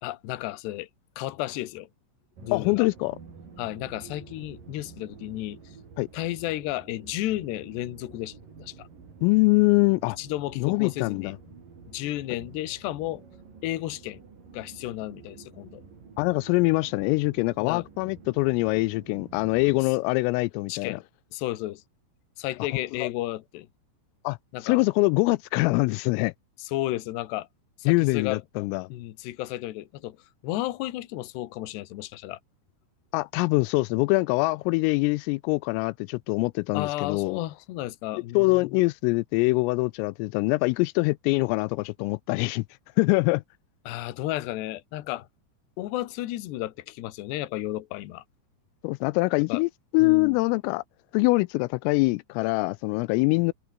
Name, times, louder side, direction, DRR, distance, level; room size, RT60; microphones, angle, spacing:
voice 1, 0.0-0.9 1.2-1.9 2.4-2.9 3.6-5.6 6.1-8.9 10.2-11.3 11.9-13.2 13.6-14.2 14.5-15.8 17.6-17.9 20.7-21.0 21.3-21.8 22.4-23.7 24.5-24.8 26.6-27.5 27.8-28.4 28.9-30.2 30.4-32.4 36.7-38.8 43.9-45.3 45.8-48.2 49.5-49.6 50.0-50.4 53.3-53.4, left 16 dB, 65° left, 3.1 m, -33 dB
sound 1, 2.4-19.9, right 5 dB, 45° right, 6.1 m, -49 dB
voice 2, 2.5-3.2 6.0-6.1 9.2-10.2 10.6-11.4 16.2-21.0 23.0-23.1 24.2-24.4 24.6-26.3 27.9-28.9 33.1-37.4 38.1-42.6 43.0-43.4 48.8-50.8 51.1-53.5, left 25 dB, 85° left, 3.2 m, -24 dB
open air
omnidirectional pair, 5.9 m